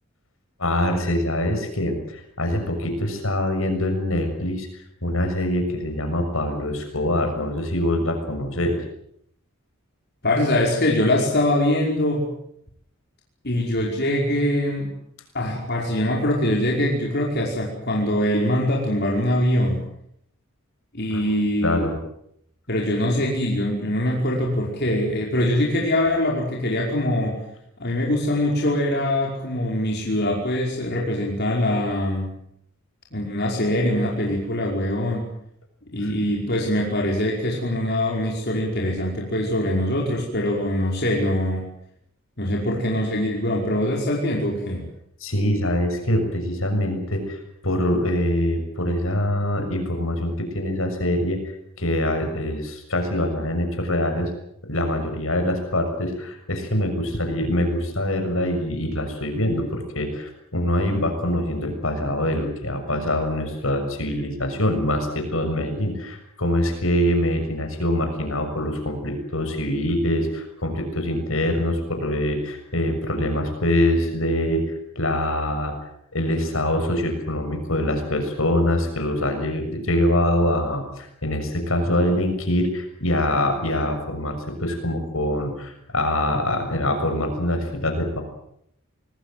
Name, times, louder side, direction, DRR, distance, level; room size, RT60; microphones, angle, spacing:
voice 1, 0.6-4.7 5.0-8.8 21.1-21.2 21.6-21.9 36.0-36.1 45.2-51.4 51.8-54.3 54.7-75.7 76.1-88.2, left 1 dB, 70° left, 6 dB, 6.7 m, -24 dB
voice 2, 10.2-12.3 13.4-14.9 15.3-19.8 20.9-21.8 22.7-27.4 27.8-32.3 33.1-35.3 35.9-41.7 42.4-44.8, left 1 dB, 50° left, -2 dB, 5.3 m, -23 dB
26.5 x 20.5 x 7.8 m, 0.72 s
head